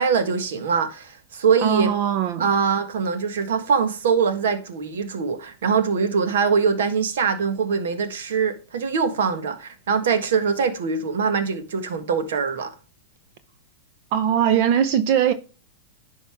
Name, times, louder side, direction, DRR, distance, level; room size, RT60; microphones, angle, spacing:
voice 1, 0.0-1.9 2.4-12.7, right 6 dB, 75° right, 1.6 m, -23 dB
voice 2, 1.6-2.5 14.1-15.3, right 9 dB, 55° right, 0.8 m, -20 dB
10.5 x 5.6 x 3.5 m
hypercardioid pair, 115°, 0 cm